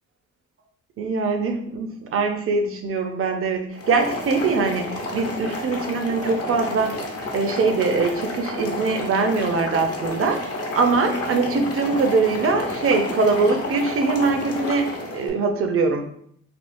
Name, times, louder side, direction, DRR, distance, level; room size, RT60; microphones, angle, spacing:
voice 1, 1.0-4.9 5.1-6.9 7.3-10.4 10.8-14.8 15.1-16.1, right 4 dB, 45° right, 5 dB, 0.6 m, -22 dB
Boiling, 3.7-15.3, left 1 dB, 50° left, 0.8 m, -30 dB
3.5 x 2.3 x 2.5 m, 0.67 s
cardioid pair, 90°, 30 cm